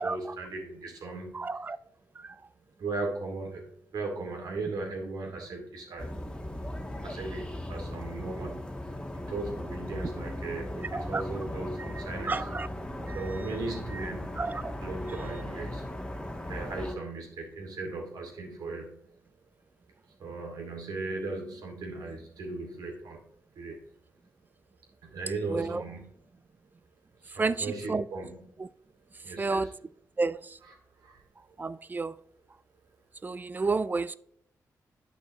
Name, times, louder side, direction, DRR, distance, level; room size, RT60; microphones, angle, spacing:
voice 1, 0.0-1.5 2.8-6.1 7.0-8.7 9.1-12.5 13.1-14.5 14.8-16.0 16.4-19.0 20.2-23.2 23.5-23.8 25.0-26.1 27.2-28.4 29.2-29.7 30.6-31.2, right 3 dB, 80° right, 2.4 m, -37 dB
voice 2, 1.3-1.8 2.2-2.4 10.9-11.2 12.3-12.7 13.1-13.3 13.9-14.0 14.4-14.7 25.5-25.8 27.4-28.0 28.6-28.7 29.4-29.7 30.2-30.6 31.6-32.2 33.2-34.2, right 3 dB, 30° right, 0.3 m, -31 dB
sound 1, 6.0-16.9, left 1 dB, 15° left, 1.4 m, -38 dB
8.9 x 5.9 x 3.0 m
cardioid pair, 85°, 7 cm